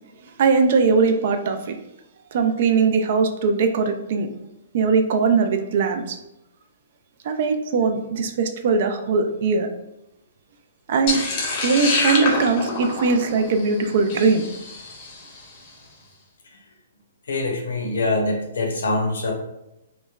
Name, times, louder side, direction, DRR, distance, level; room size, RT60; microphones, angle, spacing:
voice 1, 0.4-1.8 2.3-4.3 4.7-6.2 7.3-9.7 10.9-11.2 11.6-14.5, right 4 dB, 55° right, 6 dB, 0.3 m, -20 dB
sound 1, 11.1-15.4, left 3 dB, 40° left, 0.6 m, -26 dB
voice 2, 17.3-19.3, left 2 dB, 80° left, 2 dB, 0.6 m, -24 dB
3.1 x 2.0 x 2.3 m, 0.89 s
hypercardioid pair, 150°, 0 cm